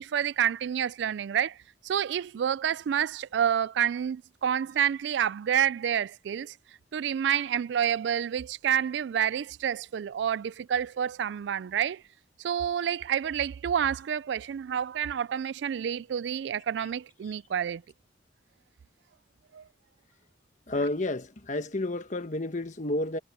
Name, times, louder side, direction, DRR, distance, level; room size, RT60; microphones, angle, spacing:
voice 1, 0.0-1.6 1.8-6.5 6.9-12.0 12.4-17.8 19.5-19.6, right 9 dB, 70° right, 0.3 m, -28 dB
voice 2, 20.7-23.2, left 2 dB, 40° left, 1.2 m, -30 dB
head